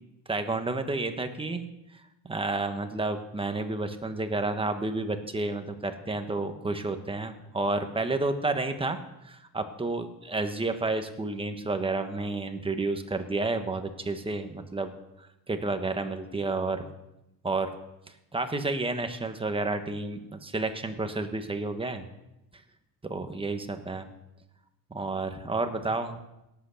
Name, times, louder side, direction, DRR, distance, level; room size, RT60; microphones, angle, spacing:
voice 1, 0.3-1.6 2.2-9.0 9.2-14.9 15.2-16.8 17.4-17.7 18.3-22.1 23.0-24.1 24.9-26.2, right 2 dB, 15° right, 7 dB, 1.2 m, -30 dB
18.0 x 8.1 x 7.1 m, 0.91 s
cardioid pair, 145°, 40 cm